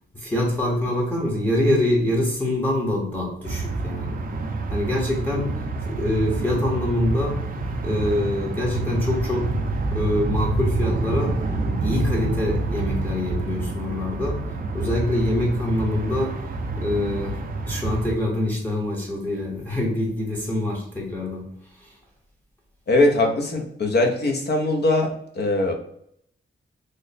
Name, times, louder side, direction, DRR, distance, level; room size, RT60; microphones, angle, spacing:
voice 1, 0.1-4.2 4.7-7.4 7.8-9.6 9.9-11.4 11.8-14.5 14.7-16.4 16.8-17.4 17.6-21.9, left 1 dB, 10° left, -4 dB, 0.7 m, -25 dB
sound 1, 3.4-18.1, right 3 dB, 45° right, 0.4 m, -27 dB
voice 2, 22.9-25.7, left 2 dB, 50° left, 3 dB, 0.6 m, -21 dB
3.2 x 2.0 x 3.9 m, 0.70 s
wide cardioid pair, 160°, 21 cm